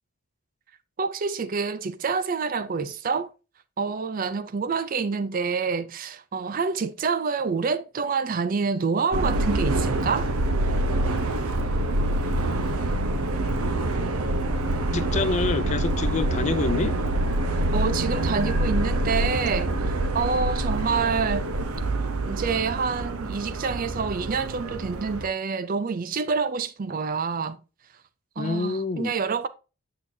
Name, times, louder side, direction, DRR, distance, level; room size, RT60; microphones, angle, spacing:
voice 1, 1.0-3.3 3.8-10.3 17.7-21.5 22.3-27.6 28.4-29.5, right 5 dB, 40° right, 0.4 m, -27 dB
Subway metro underground, 9.1-25.3, right 2 dB, 80° right, 0.8 m, -26 dB
voice 2, 14.9-17.0 28.4-29.1, left 4 dB, 30° left, 0.3 m, -27 dB
7.2 x 6.3 x 2.7 m
head